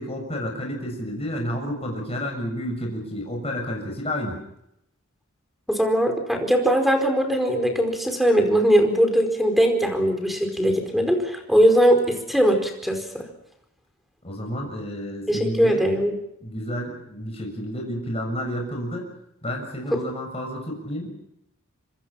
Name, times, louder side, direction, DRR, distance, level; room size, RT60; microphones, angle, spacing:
voice 1, 0.0-4.4 14.2-15.9 16.4-19.1 19.4-21.1, equal, 30° left, 1 dB, 6.7 m, -30 dB
voice 2, 5.7-13.2 15.3-16.1 19.9-20.0, equal, ahead, 4 dB, 4.9 m, -20 dB
26.5 x 25.5 x 5.9 m, 0.79 s
head